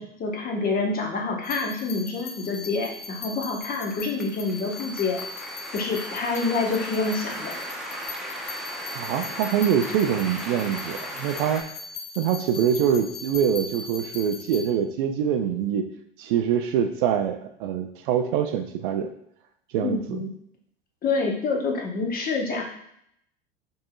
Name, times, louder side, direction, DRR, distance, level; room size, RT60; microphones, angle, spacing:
voice 1, 0.0-5.2 5.7-7.5 19.8-20.3 21.0-22.6, left 3 dB, 30° left, 1 dB, 0.9 m, -27 dB
sound 1, 1.4-14.6, left 4 dB, 75° left, 0.6 m, -39 dB
sound 2, 2.4-11.6, equal, ahead, 0.6 m, -37 dB
voice 2, 8.9-11.6 12.2-15.9 16.2-19.1 19.7-20.0, right 8 dB, 55° right, 6 dB, 0.5 m, -24 dB
5.4 x 2.7 x 2.3 m, 0.70 s
figure-of-eight pair, 75°, 30 cm